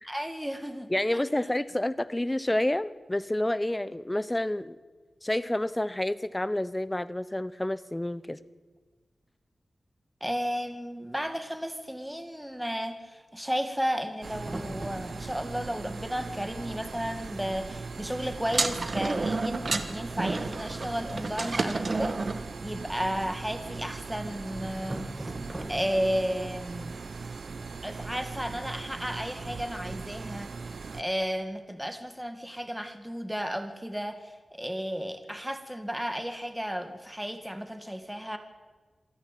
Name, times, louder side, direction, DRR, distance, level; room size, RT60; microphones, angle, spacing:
voice 1, 0.0-1.2 10.2-22.2 22.6-25.1 25.7-27.0 27.8-30.5 30.9-38.4, equal, 5° right, 7 dB, 2.1 m, -33 dB
voice 2, 0.9-4.8 5.2-8.4, left 1 dB, 15° left, 16 dB, 0.9 m, -29 dB
sound 1, 14.2-31.0, right 4 dB, 80° right, 0.9 m, -39 dB
sound 2, 14.4-15.6 16.5-16.6 16.7-17.1 17.4-17.6 18.2-18.3 18.7-19.0 20.1-20.6 22.6-23.6 24.5-26.2, right 1 dB, 25° right, 2.3 m, -42 dB
sound 3, 18.5-22.4, right 3 dB, 55° right, 1.6 m, -30 dB
27.0 x 10.0 x 9.3 m, 1.4 s
wide cardioid pair, 75°, 0 cm